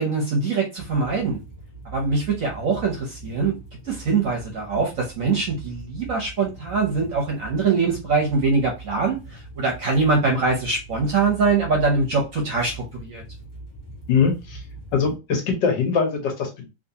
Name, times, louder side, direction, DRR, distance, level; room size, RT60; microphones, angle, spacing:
voice 1, 0.0-1.4 1.8-3.6 3.8-13.2, right 4 dB, 60° right, 1 dB, 0.9 m, -23 dB
sound 1, 0.8-15.2, right 2 dB, 20° left, 0.9 m, -41 dB
voice 2, 14.1-14.6 14.9-16.7, left 5 dB, 70° left, 3 dB, 1.6 m, -22 dB
3.5 x 2.8 x 2.7 m, 0.27 s
omnidirectional pair, 2.0 m